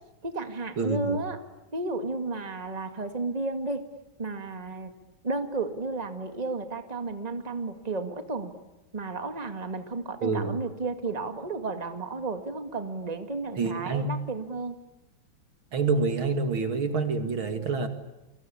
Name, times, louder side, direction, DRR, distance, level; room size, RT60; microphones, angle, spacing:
voice 1, 0.2-1.4 1.7-3.8 4.2-4.9 5.2-8.5 8.9-14.8, right 3 dB, 20° right, 7 dB, 2.1 m, -32 dB
voice 2, 0.8-1.2 10.2-10.6 13.6-14.1 15.7-17.9, right 4 dB, 80° right, 7 dB, 3.1 m, -27 dB
29.5 x 23.5 x 8.6 m, 0.96 s
omnidirectional pair, 2.2 m